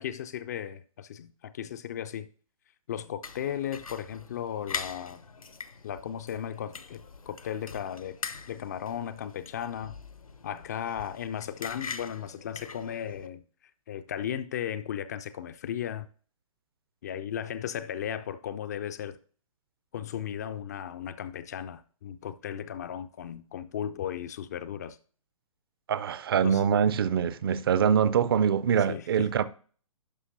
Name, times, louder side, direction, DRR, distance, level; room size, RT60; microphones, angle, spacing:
voice 1, 0.0-2.3 2.9-5.2 5.8-8.2 8.5-10.0 10.4-13.4 13.9-16.1 17.0-19.2 19.9-25.0 26.4-26.6 28.9-29.3, left 9 dB, 30° left, 0.4 m, -36 dB
sound 1, 3.2-13.3, left 5 dB, 75° left, 0.8 m, -42 dB
voice 2, 25.9-29.4, right 8 dB, 40° right, 0.5 m, -24 dB
11.5 x 5.6 x 2.7 m
figure-of-eight pair, 125°, 18 cm